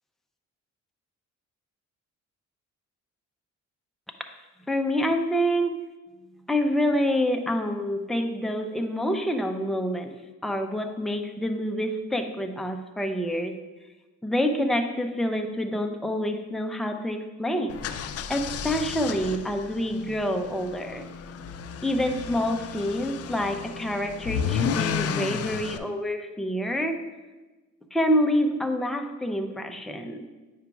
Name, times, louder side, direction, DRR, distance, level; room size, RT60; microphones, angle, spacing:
voice 1, 4.7-5.8 6.5-10.1 10.4-13.6 14.2-17.8 18.3-21.1 21.8-27.0 27.9-30.3, equal, ahead, 4 dB, 0.5 m, -27 dB
sound 1, 17.7-25.8, left 8 dB, 55° left, 0.4 m, -33 dB
9.3 x 4.9 x 2.3 m, 1.2 s
cardioid pair, 90°, 30 cm